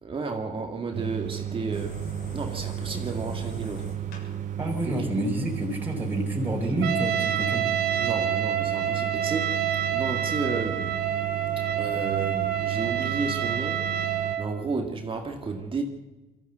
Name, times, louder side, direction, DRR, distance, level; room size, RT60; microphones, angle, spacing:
voice 1, 0.0-2.0 2.3-3.9 4.9-5.1 8.0-9.6 9.9-11.0 11.8-15.8, right 4 dB, 30° right, 2.2 m, -32 dB
sound 1, 0.9-14.4, right 11 dB, 50° right, 0.8 m, -34 dB
sound 2, 1.7-6.7, left 3 dB, 75° left, 7.3 m, -44 dB
voice 2, 4.6-7.6, right 1 dB, 10° right, 4.5 m, -28 dB
Trumpet, 6.8-14.5, right 9 dB, 70° right, 2.5 m, -28 dB
23.0 x 14.0 x 8.1 m
cardioid pair, 110°, 17 cm